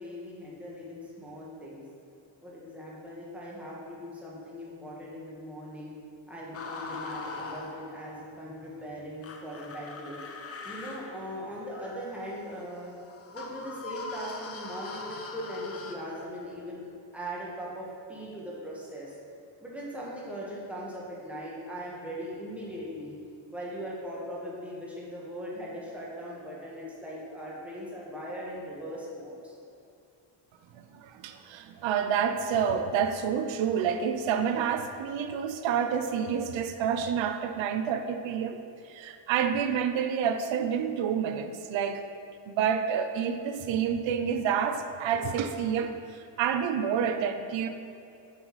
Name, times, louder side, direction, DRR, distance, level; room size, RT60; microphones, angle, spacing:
voice 1, 0.0-1.8 2.4-5.9 6.3-10.2 10.6-13.0 13.3-19.2 19.6-23.2 23.5-29.5, equal, 5° right, -6 dB, 1.4 m, -40 dB
sound 1, 6.5-8.2 9.2-16.0, left 4 dB, 30° left, 0.6 m, -41 dB
voice 2, 30.7-38.6 38.9-42.0 42.5-45.9 46.4-47.7, right 7 dB, 70° right, 8 dB, 0.6 m, -28 dB
7.8 x 4.0 x 4.7 m, 2.6 s
cardioid pair, 125°, 48 cm